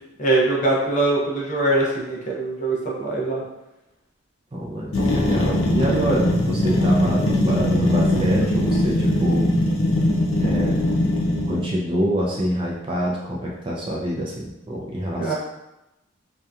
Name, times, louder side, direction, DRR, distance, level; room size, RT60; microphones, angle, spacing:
voice 1, 0.2-3.4 15.2-15.3, right 2 dB, 40° left, -4 dB, 0.6 m, -22 dB
voice 2, 4.5-9.5 10.4-10.8 11.5-15.3, equal, 25° right, -3 dB, 0.3 m, -26 dB
sound 1, 4.9-11.7, left 1 dB, 90° left, 0.5 m, -20 dB
2.7 x 2.3 x 2.3 m, 0.95 s
head